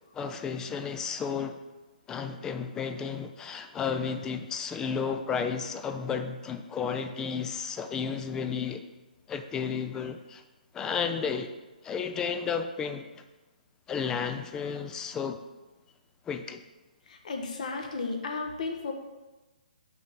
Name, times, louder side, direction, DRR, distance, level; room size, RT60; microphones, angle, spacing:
voice 1, 0.1-1.6 2.1-8.8 9.3-10.4 10.7-11.5 11.8-13.1 13.9-15.4 16.3-16.6, left 6 dB, 10° left, 8 dB, 0.3 m, -32 dB
voice 2, 17.1-18.9, left 4 dB, 55° left, 3 dB, 1.0 m, -34 dB
5.6 x 3.6 x 5.9 m, 1.1 s
figure-of-eight pair, 135°, 5 cm